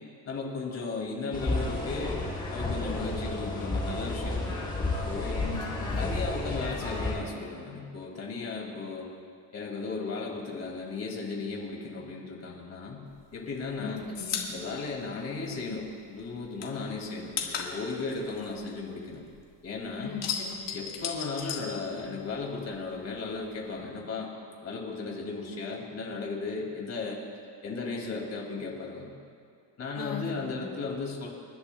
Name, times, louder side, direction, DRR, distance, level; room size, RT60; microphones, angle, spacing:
voice 1, 0.3-2.2 2.5-4.6 5.0-5.5 6.0-9.1 9.5-13.1 13.3-14.1 14.5-19.2 19.6-20.1 20.7-24.3 24.6-27.2 27.6-29.1 29.8-31.3, left 4 dB, 35° left, -1 dB, 2.4 m, -35 dB
sound 1, 1.3-7.1, left 2 dB, 10° left, 3.1 m, -31 dB
voice 2, 5.4-6.0 13.8-14.4 20.0-20.5 30.0-30.6, left 5 dB, 50° left, -3 dB, 3.4 m, -39 dB
sound 2, 13.1-15.9 16.2-19.5 19.8-22.4 22.7-23.8, left 7 dB, 70° left, 1.8 m, -36 dB
28.5 x 11.5 x 2.3 m, 2.3 s
cardioid pair, 180°, 44 cm